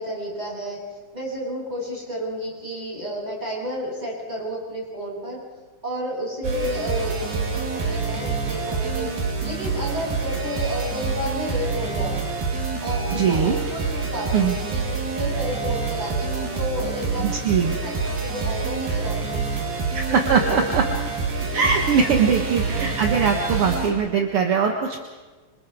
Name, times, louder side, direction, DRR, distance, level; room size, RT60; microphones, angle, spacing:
voice 1, 0.0-5.4 5.8-12.2 12.8-19.4 20.1-20.6 22.0-22.2, equal, 10° right, -4 dB, 8.1 m, -31 dB
sound 1, 6.4-23.9, right 4 dB, 80° right, 5.3 m, -27 dB
voice 2, 13.2-13.6 14.3-14.5 17.2-17.7 19.9-20.8 21.5-25.0, right 6 dB, 55° right, 3 dB, 1.7 m, -21 dB
26.5 x 26.5 x 4.8 m, 1.3 s
omnidirectional pair, 4.1 m